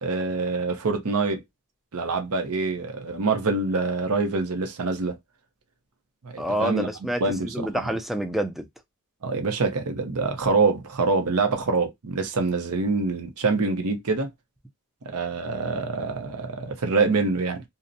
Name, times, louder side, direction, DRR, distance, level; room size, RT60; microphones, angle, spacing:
voice 1, 0.0-1.4 1.9-5.2 6.2-6.9 7.2-7.8 9.2-14.3 15.1-17.6, right 3 dB, 80° right, 0.7 m, -25 dB
voice 2, 6.4-8.7, equal, ahead, 0.3 m, -28 dB
2.5 x 2.1 x 2.6 m
head